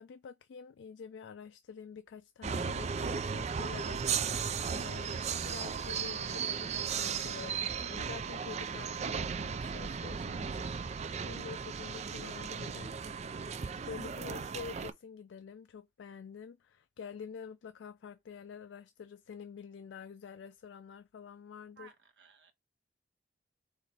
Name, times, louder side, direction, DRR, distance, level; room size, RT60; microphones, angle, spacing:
voice 1, 0.0-4.0 4.7-12.9 13.3-21.9, left 6 dB, 75° left, 0.3 m, -48 dB
sound 1, 2.4-14.9, right 6 dB, 35° right, 0.4 m, -36 dB
voice 2, 21.8-22.5, right 6 dB, 70° right, 1.1 m, -57 dB
4.1 x 2.9 x 4.3 m
head